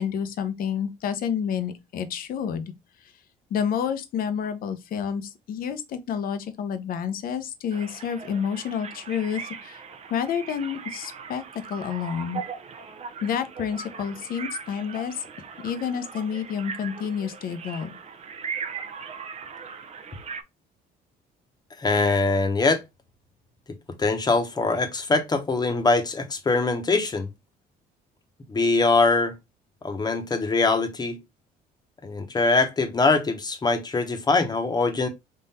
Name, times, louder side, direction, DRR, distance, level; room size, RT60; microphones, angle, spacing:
voice 1, 0.0-2.7 3.5-9.8 10.1-12.4 13.2-15.2 15.6-18.0, left 7 dB, 60° left, 0.7 m, -29 dB
sound 1, 7.7-20.4, right 6 dB, 40° right, 0.7 m, -39 dB
voice 2, 21.8-22.8 24.0-27.3 28.5-29.3 29.8-31.2 32.0-35.1, left 3 dB, 25° left, 1.0 m, -22 dB
3.7 x 2.6 x 4.1 m
cardioid pair, 110°, 17 cm